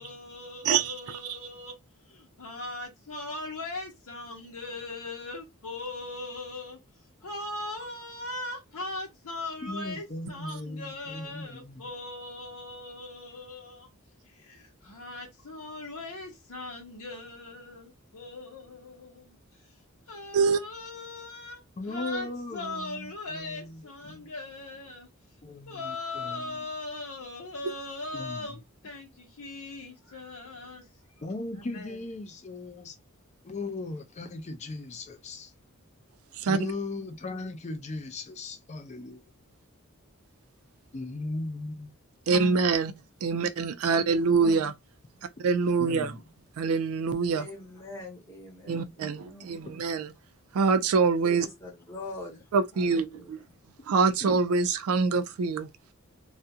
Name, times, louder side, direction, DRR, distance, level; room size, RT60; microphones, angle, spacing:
voice 1, 0.0-1.7 2.1-6.8 7.2-13.9 14.2-19.4 19.6-19.7 20.1-25.1 25.7-30.9 31.6-32.0, left 2 dB, 90° left, 0.8 m, -39 dB
voice 2, 0.6-1.2 20.3-20.6 36.4-36.7 42.3-42.9 43.2-44.7 45.4-46.1 46.6-47.5 48.7-50.1 50.5-51.5 52.5-53.4 53.9-55.7, right 4 dB, 75° right, 0.4 m, -25 dB
voice 3, 9.6-11.9 21.8-24.3 25.4-26.6 28.1-28.6 31.2-33.0 33.4-35.5 36.5-39.2 40.9-41.9 45.8-46.2 54.2-54.3, left 2 dB, 30° left, 0.4 m, -38 dB
voice 4, 47.3-49.6 51.2-52.4 52.7-53.6, left 2 dB, 10° left, 0.9 m, -43 dB
2.4 x 2.1 x 2.7 m
head